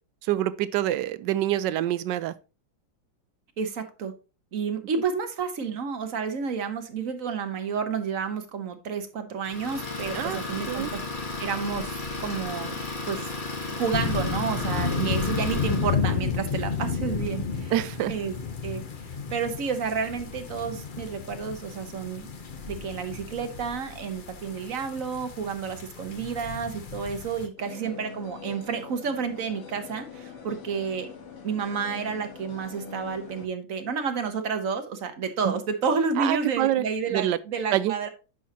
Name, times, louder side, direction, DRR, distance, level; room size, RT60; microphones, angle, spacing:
voice 1, 0.3-2.3 10.1-10.4 10.7-10.9 15.0-15.1 17.7-18.1 35.4-35.5 36.2-36.8 37.1-37.4 37.7-38.1, right 13 dB, 75° right, 1.1 m, -26 dB
voice 2, 3.6-4.1 4.5-11.0 11.4-12.8 13.1-13.3 13.7-17.7 18.1-18.4 18.6-18.9 19.3-22.3 22.7-31.1 31.4-38.1, right 6 dB, 50° right, 1.2 m, -30 dB
Idling, 9.4-16.0, left 3 dB, 30° left, 1.4 m, -34 dB
sound 1, 13.9-27.5, left 5 dB, 60° left, 0.5 m, -32 dB
sound 2, 27.6-33.5, left 5 dB, 85° left, 2.2 m, -43 dB
9.3 x 6.3 x 2.8 m
omnidirectional pair, 2.1 m